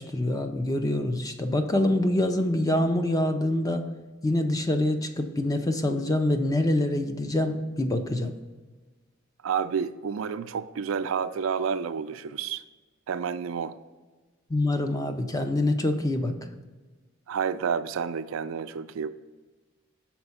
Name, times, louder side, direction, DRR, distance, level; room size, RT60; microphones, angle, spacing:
voice 1, 0.0-3.8 4.2-8.3 14.5-16.6, left 1 dB, 15° left, 7 dB, 0.5 m, -25 dB
voice 2, 9.4-12.6 13.1-13.8 17.3-19.1, right 6 dB, 80° right, 11 dB, 0.4 m, -30 dB
5.9 x 4.3 x 5.5 m, 1.3 s
head